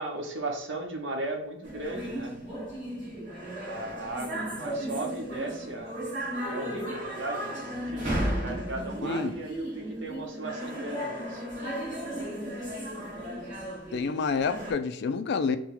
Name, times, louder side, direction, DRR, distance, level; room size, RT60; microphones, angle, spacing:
voice 1, 0.0-2.4 3.6-6.1 6.4-11.4, right 2 dB, 70° right, 3 dB, 0.9 m, -37 dB
sound 1, 1.6-14.7, right 1 dB, 40° right, 1.5 m, -35 dB
voice 2, 9.0-9.4 13.9-15.6, left 5 dB, 60° left, 11 dB, 0.4 m, -28 dB
4.4 x 2.2 x 3.7 m, 0.78 s
head